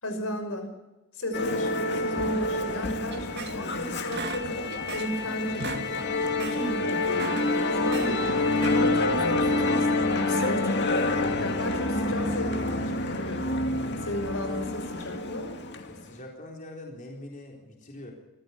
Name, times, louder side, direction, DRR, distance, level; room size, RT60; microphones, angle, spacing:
voice 1, 0.0-0.7 1.1-5.8 6.4-13.5 14.0-15.5, left 1 dB, 70° left, 6 dB, 5.9 m, -34 dB
Musical instrument, 1.3-16.0, left 2 dB, 50° left, 2.2 m, -27 dB
sound 1, 3.1-3.8 4.1-5.2 5.5-5.9 6.2-6.6 7.0-8.1 8.5-9.0, right 3 dB, 50° right, 2.3 m, -37 dB
voice 2, 15.9-18.1, left 1 dB, 35° left, 0 dB, 4.1 m, -43 dB
25.0 x 15.0 x 8.4 m, 1.0 s
head